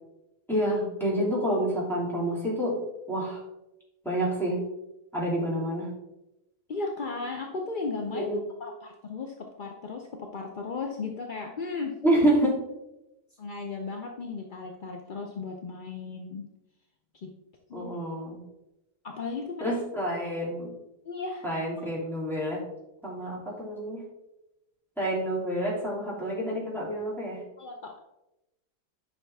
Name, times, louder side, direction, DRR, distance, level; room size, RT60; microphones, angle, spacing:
voice 1, 0.5-2.8 3.1-3.4 4.0-4.6 5.1-5.9 8.1-8.4 12.0-12.6 17.7-18.4 19.6-20.7 21.4-22.6 23.0-24.0 25.0-27.4, right 1 dB, ahead, -6 dB, 2.9 m, -28 dB
voice 2, 6.7-8.3 8.6-11.9 13.4-16.5 17.2-17.3 17.7-17.9 19.0-19.8 21.0-21.5 21.8-22.1 27.6-28.0, left 4 dB, 55° left, 2 dB, 0.6 m, -36 dB
9.6 x 5.7 x 3.5 m, 0.94 s
omnidirectional pair, 1.7 m